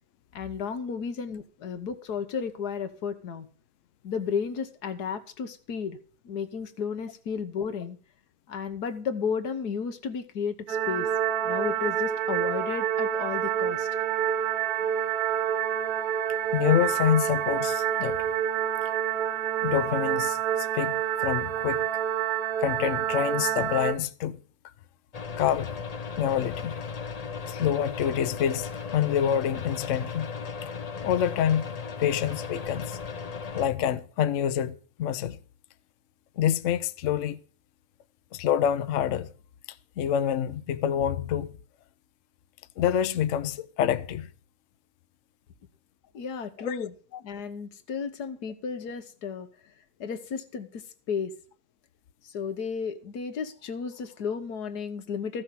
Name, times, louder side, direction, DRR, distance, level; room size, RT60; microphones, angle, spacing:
voice 1, 0.3-3.5 4.0-6.0 6.2-8.0 8.5-11.1 11.4-13.9 46.1-46.9 47.2-49.5 50.0-50.8 51.1-51.3 52.2-55.4, left 6 dB, 85° left, 1.7 m, -33 dB
sound 1, 10.7-23.9, right 9 dB, 70° right, 1.5 m, -27 dB
voice 2, 16.5-18.2 19.6-21.9 22.6-24.4 25.4-25.7 26.2-26.8 27.5-30.3 30.6-30.7 31.0-33.0 33.5-35.4 36.4-37.4 38.3-39.3 40.0-41.6 42.8-44.3 46.6-46.9, left 9 dB, 60° left, 0.9 m, -27 dB
sound 2, 25.1-33.7, left 5 dB, 40° left, 0.5 m, -36 dB
14.0 x 6.5 x 5.8 m
omnidirectional pair, 1.7 m